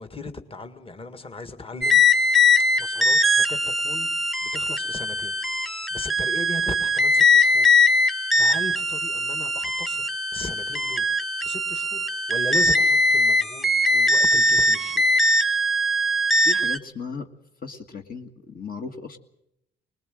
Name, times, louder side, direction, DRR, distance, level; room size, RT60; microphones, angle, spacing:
voice 1, 0.0-2.0 2.8-7.8 8.3-15.0, left 3 dB, 25° left, 1.8 m, -37 dB
sound 1, 1.8-16.8, left 2 dB, ahead, 1.0 m, -21 dB
voice 2, 16.4-17.3 17.6-19.2, left 4 dB, 45° left, 1.8 m, -36 dB
21.5 x 20.0 x 7.8 m
cardioid pair, 90°, 20 cm